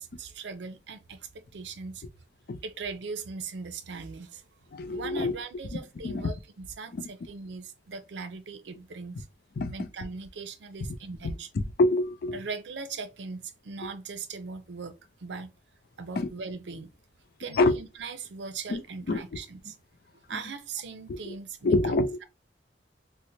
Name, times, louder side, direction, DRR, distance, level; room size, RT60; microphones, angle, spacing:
voice 1, 0.0-2.0 2.6-4.4 4.9-9.3 9.7-11.5 12.3-15.5 16.0-16.9 17.4-19.8 20.3-22.0, right 4 dB, 80° right, 0.5 m, -39 dB
voice 2, 4.7-5.3 6.0-6.3 9.6-9.7 11.8-12.4 16.2-16.3 17.5-17.8 18.7-18.8 19.1-19.2 21.3-21.4 21.6-22.2, left 2 dB, 55° left, 0.4 m, -25 dB
4.3 x 2.0 x 2.6 m
head